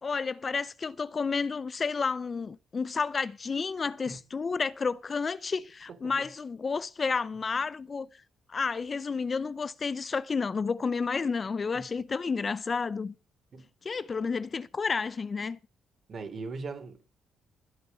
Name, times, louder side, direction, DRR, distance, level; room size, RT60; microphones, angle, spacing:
voice 1, 0.0-8.1 8.5-13.1 13.9-15.6, left 5 dB, 35° left, 0.6 m, -31 dB
voice 2, 16.1-17.1, right 4 dB, 50° right, 3.6 m, -40 dB
13.5 x 8.7 x 5.6 m
cardioid pair, 90°, 0 cm